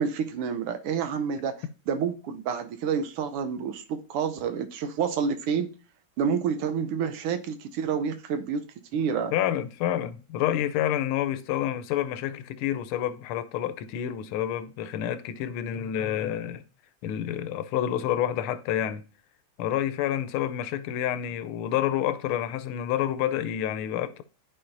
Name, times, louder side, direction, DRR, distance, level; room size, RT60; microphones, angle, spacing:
voice 1, 0.0-1.5 1.9-5.7 6.2-8.6 8.9-9.3, right 6 dB, 90° right, 1.7 m, -28 dB
voice 2, 9.3-16.6 17.0-19.0 19.6-24.2, left 11 dB, 80° left, 1.4 m, -28 dB
12.5 x 4.3 x 2.6 m
omnidirectional pair, 2.4 m